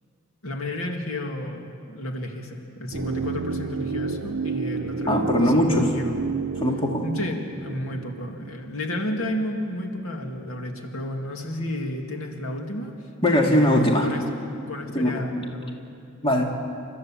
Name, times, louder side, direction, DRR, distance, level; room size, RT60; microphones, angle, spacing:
voice 1, 0.4-6.2 7.0-13.1 13.4-14.2 14.7-15.8, left 1 dB, 80° left, 2 dB, 2.3 m, -32 dB
sound 1, 2.9-8.9 9.2-9.3, right 4 dB, 80° right, 0.6 m, -30 dB
voice 2, 5.1-5.9 6.6-7.0 13.2-14.1 14.9-15.2 16.2-16.4, left 1 dB, 25° left, 0 dB, 2.1 m, -20 dB
29.5 x 14.0 x 7.5 m, 2.5 s
head